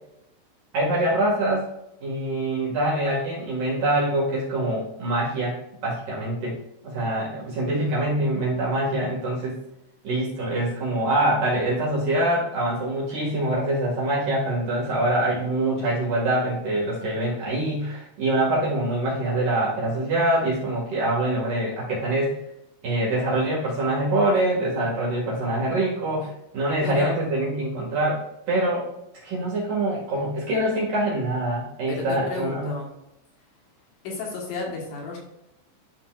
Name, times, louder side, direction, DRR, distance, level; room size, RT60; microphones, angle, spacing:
voice 1, 0.7-1.7 2.0-5.6 5.8-6.6 6.8-9.5 10.0-22.4 22.8-28.8 29.2-32.7, right 1 dB, 50° right, -6 dB, 3.0 m, -24 dB
voice 2, 31.9-32.9 34.0-35.2, left 3 dB, 70° left, -2 dB, 3.4 m, -32 dB
12.0 x 5.7 x 2.5 m, 0.84 s
omnidirectional pair, 5.9 m